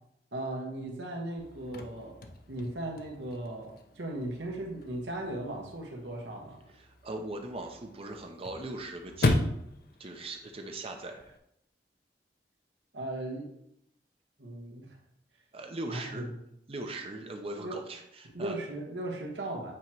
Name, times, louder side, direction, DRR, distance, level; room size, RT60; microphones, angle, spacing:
voice 1, 0.3-6.6 12.9-13.5 14.4-15.0 15.9-16.3 17.6-17.8 18.3-19.7, right 1 dB, 85° right, 0 dB, 1.4 m, -37 dB
Chirp tweet / Car / Slam, 1.4-11.4, left 2 dB, 60° left, 0.6 m, -36 dB
voice 2, 6.8-9.4 10.0-11.3 15.5-16.3 16.7-18.6, right 2 dB, 35° right, 4 dB, 0.6 m, -40 dB
8.2 x 3.0 x 4.6 m, 0.78 s
head